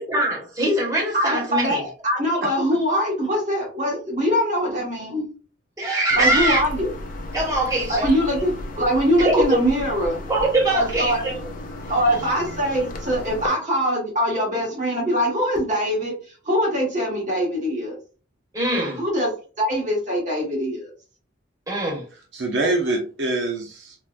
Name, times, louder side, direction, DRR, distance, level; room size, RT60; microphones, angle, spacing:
voice 1, 0.0-1.9 5.8-6.6 7.3-8.1 9.2-9.6 10.3-11.4 18.5-19.0 21.7-22.0, right 1 dB, 20° right, 1.2 m, -22 dB
voice 2, 1.1-5.3 6.1-6.9 7.9-10.2 10.7-11.2 11.9-18.0 19.0-19.3 19.6-20.9, equal, 45° right, 1.4 m, -23 dB
voice 3, 2.4-2.8 22.3-24.0, right 2 dB, 70° right, 0.6 m, -25 dB
sound 1, 6.1-13.5, left 1 dB, 45° left, 0.5 m, -34 dB
3.8 x 2.2 x 2.4 m
head